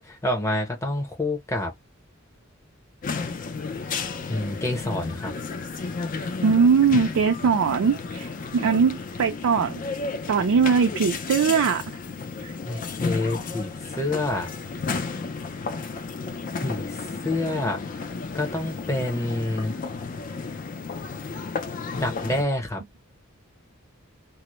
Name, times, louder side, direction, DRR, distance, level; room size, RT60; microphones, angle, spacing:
voice 1, 0.2-1.7 4.3-5.3 12.7-14.5 16.6-17.8 18.3-19.7 21.9-22.8, left 1 dB, 15° left, 0.7 m, -27 dB
sound 1, 3.0-22.4, left 4 dB, 40° left, 0.4 m, -33 dB
voice 2, 6.4-9.8 10.3-11.8 12.4-12.6, right 6 dB, 75° right, 0.4 m, -21 dB
2.1 x 2.0 x 2.9 m
head